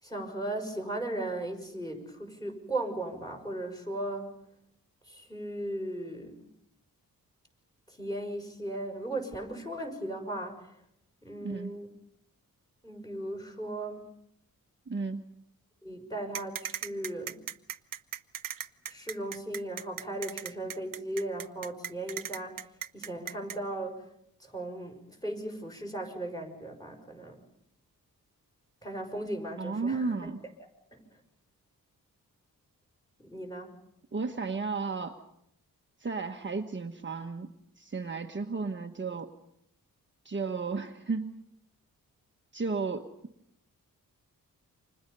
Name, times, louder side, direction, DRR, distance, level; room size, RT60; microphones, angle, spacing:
voice 1, 0.0-4.4 5.1-6.4 7.9-10.7 11.2-11.9 12.8-14.1 15.8-17.4 18.9-22.6 22.9-24.0 24.4-27.4 28.8-30.3 30.9-31.0 33.2-33.8, right 1 dB, 10° left, 3 dB, 6.0 m, -37 dB
voice 2, 11.4-11.7 14.9-15.2 29.6-30.4 34.1-35.2 36.0-37.5 37.8-39.3 40.2-41.4 42.5-43.1, right 4 dB, 30° right, 4 dB, 1.3 m, -33 dB
sound 1, 16.3-23.6, right 9 dB, 65° right, 0.9 m, -37 dB
29.5 x 26.0 x 5.5 m, 0.74 s
wide cardioid pair, 115°, 35 cm